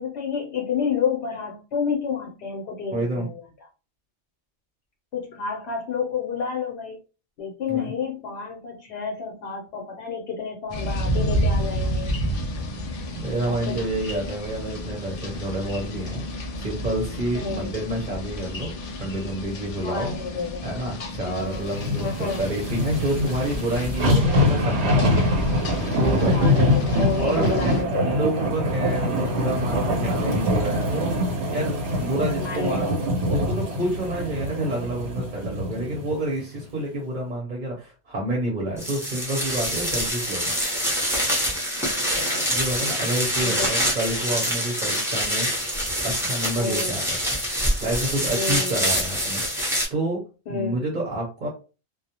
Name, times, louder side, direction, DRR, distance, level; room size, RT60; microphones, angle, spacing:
voice 1, 0.0-3.4 5.1-7.0 7.4-12.1 13.5-13.8 17.3-17.7 19.8-20.6 21.2-21.7 22.0-22.5 26.3-28.2 32.4-33.0 33.3-33.4 34.1-34.2 41.7-42.5 43.4-43.7 46.6-46.9 48.3-48.7 50.5-50.8, left 5 dB, 75° left, 0 dB, 0.9 m, -30 dB
voice 2, 2.9-3.3 7.7-7.9 13.1-16.2 16.6-20.1 20.6-25.1 25.9-26.4 27.2-31.1 31.5-32.9 33.3-40.5 42.5-45.5 46.0-47.2 47.5-50.2 50.5-51.5, right 1 dB, 50° right, -2 dB, 0.8 m, -29 dB
sound 1, 10.7-27.8, equal, 60° left, 0.4 m, -31 dB
sound 2, 21.7-36.2 36.6-36.7, left 1 dB, 85° right, 1.1 m, -24 dB
sound 3, 38.8-49.8, equal, 5° right, 0.6 m, -25 dB
2.3 x 2.0 x 2.8 m, 0.33 s
omnidirectional pair, 1.1 m